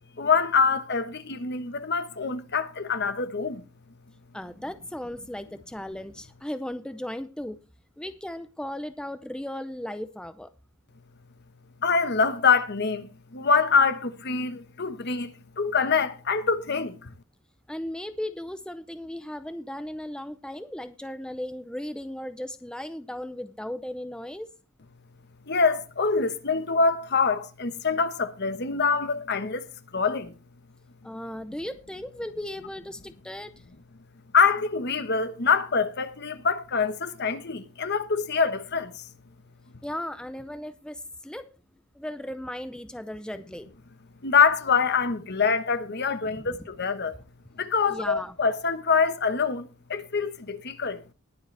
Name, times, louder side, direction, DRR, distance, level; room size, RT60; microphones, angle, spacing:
voice 1, 0.2-3.6 11.8-17.1 25.5-29.7 29.9-30.3 34.3-39.1 44.2-47.1 47.6-51.1, left 5 dB, 50° left, 1.2 m, -25 dB
voice 2, 4.3-7.6 8.0-10.5 17.7-24.5 31.0-33.7 39.8-41.5 41.9-43.7 46.4-46.5 47.9-48.3, left 1 dB, 5° left, 0.5 m, -36 dB
20.0 x 7.7 x 3.3 m
head